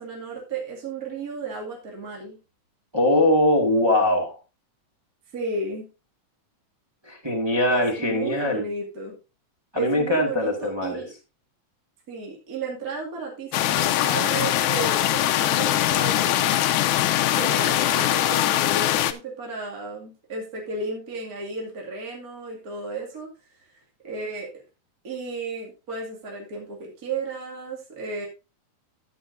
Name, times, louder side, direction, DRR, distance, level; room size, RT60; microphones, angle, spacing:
voice 1, 0.0-2.4 5.3-5.9 7.7-9.2 9.7-11.1 12.1-16.6 17.3-23.3 23.7-24.5 25.0-28.3, right 3 dB, 30° right, -2 dB, 2.4 m, -33 dB
voice 2, 2.9-4.4 7.0-8.7 9.7-11.0, left 1 dB, 15° right, -1 dB, 1.0 m, -22 dB
sound 1, 13.5-19.1, left 13 dB, 80° left, 2.0 m, -22 dB
13.0 x 8.7 x 2.6 m, 0.30 s
omnidirectional pair, 3.8 m